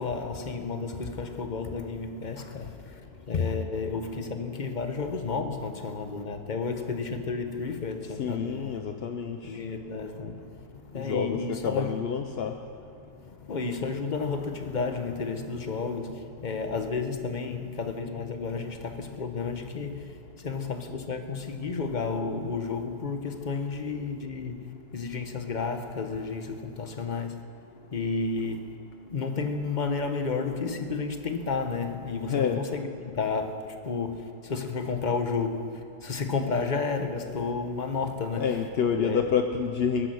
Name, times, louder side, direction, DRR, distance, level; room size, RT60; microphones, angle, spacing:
voice 1, 0.0-8.8 9.4-10.7 10.9-12.1 13.1-27.4 27.9-28.8 29.1-38.6 38.9-39.2, left 4 dB, 30° left, 1.0 m, -32 dB
voice 2, 8.2-9.6 10.9-12.5 32.3-32.6 38.4-40.1, left 7 dB, 60° left, 0.6 m, -28 dB
21.0 x 10.5 x 6.4 m
omnidirectional pair, 1.8 m